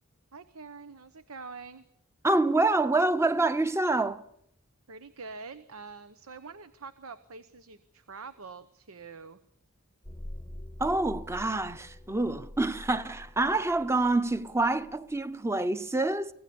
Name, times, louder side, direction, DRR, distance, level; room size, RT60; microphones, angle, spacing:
voice 1, 0.3-1.9 4.9-9.4, right 4 dB, 90° right, 1.0 m, -45 dB
voice 2, 2.2-4.2 10.8-16.3, right 2 dB, 15° right, 0.8 m, -26 dB
sound 1, 10.0-15.0, left 1 dB, 15° left, 0.8 m, -45 dB
24.5 x 17.0 x 7.0 m
head